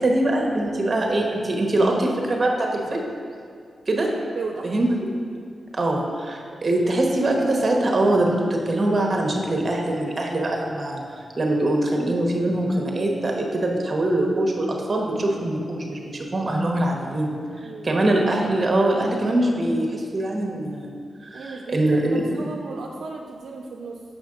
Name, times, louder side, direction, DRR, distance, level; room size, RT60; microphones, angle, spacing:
voice 1, 0.0-3.0 3.9-4.1 4.6-4.9 5.7-20.9 21.2-22.4, right 1 dB, 40° right, 0 dB, 1.0 m, -23 dB
voice 2, 4.3-4.8 17.6-17.9 21.3-24.0, right 4 dB, 80° right, 1 dB, 0.4 m, -35 dB
6.6 x 5.0 x 3.8 m, 2.3 s
cardioid pair, 70°, 0 cm